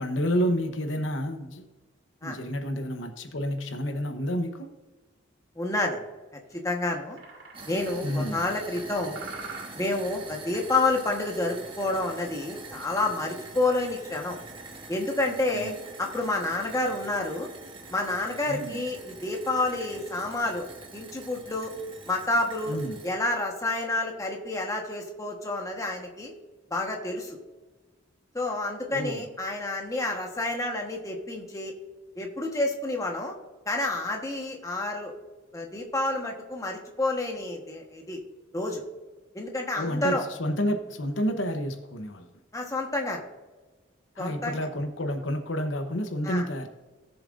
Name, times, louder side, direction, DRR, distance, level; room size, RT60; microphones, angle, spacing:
voice 1, 0.0-1.7 2.2-4.7 8.0-8.4 15.5-15.8 18.5-18.8 22.7-23.0 28.8-29.3 39.7-42.3 44.2-46.7, equal, 75° left, 0.9 m, -30 dB
voice 2, 5.6-6.0 6.5-7.2 7.6-9.3 9.7-14.4 14.9-15.7 16.0-17.5 17.9-20.7 20.9-21.7 22.1-22.8 23.0-26.3 26.7-27.4 28.3-31.7 32.2-33.3 33.7-35.1 35.5-38.2 38.5-38.8 39.3-40.2 42.5-43.2 44.2-44.6 46.2-46.4, left 2 dB, 15° left, 1.2 m, -29 dB
sound 1, 6.5-6.6 7.1-8.0 8.4-8.9 9.2-10.1 10.5-10.8 11.3-11.9 12.2-12.3 12.6-12.7 13.2-13.5, right 4 dB, 90° right, 2.4 m, -45 dB
sound 2, 7.5-23.1, right 3 dB, 25° right, 1.4 m, -44 dB
17.0 x 7.2 x 2.5 m
head